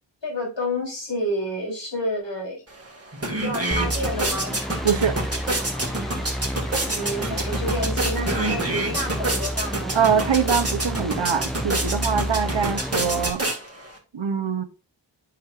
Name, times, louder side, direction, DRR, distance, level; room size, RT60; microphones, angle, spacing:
voice 1, 0.2-2.6 3.3-4.5 6.9-10.0, equal, 75° left, 3.5 m, -29 dB
sound 1, 2.7-2.8 3.1-14.0, right 2 dB, 35° right, 2.0 m, -28 dB
sound 2, 3.7-13.3, equal, ahead, 0.3 m, -30 dB
sound 3, 4.1-8.3, left 2 dB, 50° left, 1.7 m, -41 dB
voice 2, 4.8-5.2 9.9-13.4 14.1-14.6, right 7 dB, 85° right, 0.8 m, -23 dB
8.5 x 5.9 x 2.5 m
wide cardioid pair, 45°, 44 cm